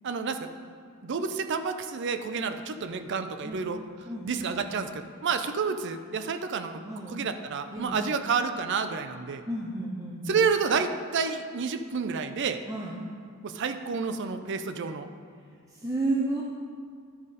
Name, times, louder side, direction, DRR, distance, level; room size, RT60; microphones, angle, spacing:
voice 1, 0.0-0.5 1.0-3.8 4.2-6.8 7.1-9.4 10.3-12.6 13.4-15.1, right 5 dB, 55° right, 9 dB, 0.5 m, -29 dB
voice 2, 9.4-10.4 12.7-13.0 15.7-16.4, right 2 dB, 15° right, -4 dB, 0.6 m, -32 dB
11.0 x 4.9 x 4.1 m, 2.2 s
head